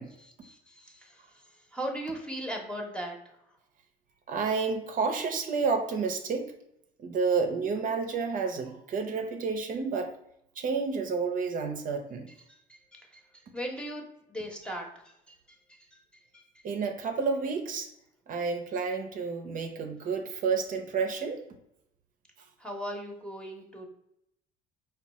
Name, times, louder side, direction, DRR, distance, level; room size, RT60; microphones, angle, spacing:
voice 1, 0.2-3.2 12.5-14.0 14.3-16.0 16.3-16.7 22.6-23.9, equal, 5° left, 1 dB, 0.9 m, -39 dB
voice 2, 4.3-6.5 7.0-10.2 10.6-12.3 16.6-17.9 18.3-21.4, right 5 dB, 55° right, 5 dB, 0.6 m, -30 dB
4.6 x 2.3 x 4.1 m, 0.78 s
cardioid pair, 110°, 17 cm